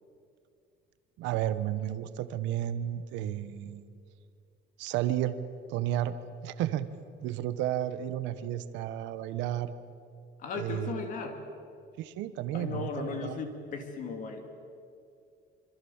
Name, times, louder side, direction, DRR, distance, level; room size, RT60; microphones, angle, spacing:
voice 1, 1.2-3.8 4.8-5.4 5.7-6.1 6.4-6.9 7.2-9.7 10.5-10.9 12.0-13.4, right 12 dB, 75° right, 12 dB, 1.3 m, -32 dB
voice 2, 10.4-11.4 12.5-14.4, left 4 dB, 45° left, 5 dB, 2.5 m, -36 dB
26.0 x 26.0 x 7.3 m, 2.4 s
cardioid pair, 175°, 19 cm